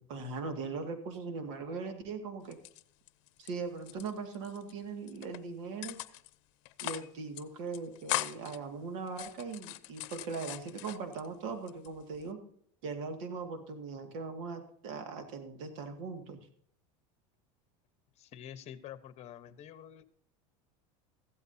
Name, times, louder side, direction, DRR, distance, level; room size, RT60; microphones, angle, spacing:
voice 1, 0.0-2.6 3.4-6.0 6.8-12.4 12.8-16.4, right 4 dB, 75° right, 5 dB, 2.2 m, -40 dB
sound 1, 2.4-3.5 3.8-4.7 5.1-5.4 5.8-6.3 6.6-7.1 7.3-7.4 7.7-8.6 9.1-11.3 11.7-12.3, left 19 dB, 75° left, 0.7 m, -40 dB
voice 2, 18.2-20.1, left 10 dB, 40° left, 12 dB, 1.2 m, -48 dB
15.5 x 12.5 x 2.8 m, 0.64 s
supercardioid pair, 125°, 16 cm